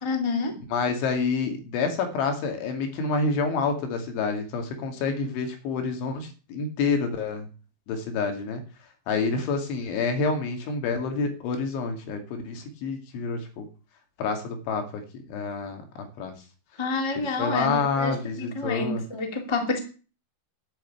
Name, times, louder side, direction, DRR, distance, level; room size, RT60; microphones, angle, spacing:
voice 1, 0.0-0.6 16.8-19.8, left 3 dB, 15° left, 4 dB, 1.1 m, -28 dB
voice 2, 0.7-7.5 7.9-8.6 9.1-13.7 14.2-15.0 15.3-15.8 16.2-16.3 17.2-19.0, left 4 dB, 85° left, 5 dB, 4.7 m, -28 dB
12.0 x 7.8 x 8.6 m, 0.36 s
omnidirectional pair, 5.3 m